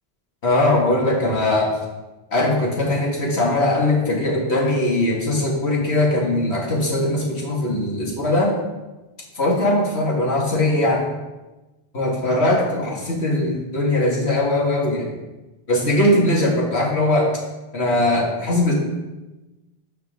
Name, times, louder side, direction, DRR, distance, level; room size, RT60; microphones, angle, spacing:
voice 1, 0.4-1.8 2.3-8.6 9.3-11.1 11.9-15.1 15.7-17.4 17.7-18.7, left 1 dB, 85° left, -3 dB, 2.2 m, -20 dB
13.5 x 4.6 x 3.7 m, 1.1 s
omnidirectional pair, 1.1 m